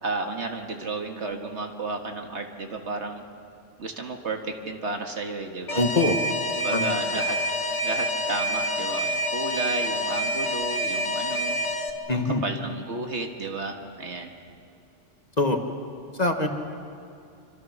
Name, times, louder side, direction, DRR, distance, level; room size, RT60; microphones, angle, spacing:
voice 1, 0.0-3.2 3.8-5.8 6.6-7.4 7.8-11.6 12.1-14.3, right 3 dB, 70° right, 4 dB, 1.9 m, -32 dB
Alarm, 5.7-11.9, equal, 80° left, 2.1 m, -27 dB
voice 2, 5.7-6.2 6.7-6.9 12.1-12.4 15.4-15.6 16.2-16.5, left 2 dB, 35° left, 4 dB, 1.7 m, -23 dB
26.5 x 26.0 x 6.0 m, 2.5 s
omnidirectional pair, 1.2 m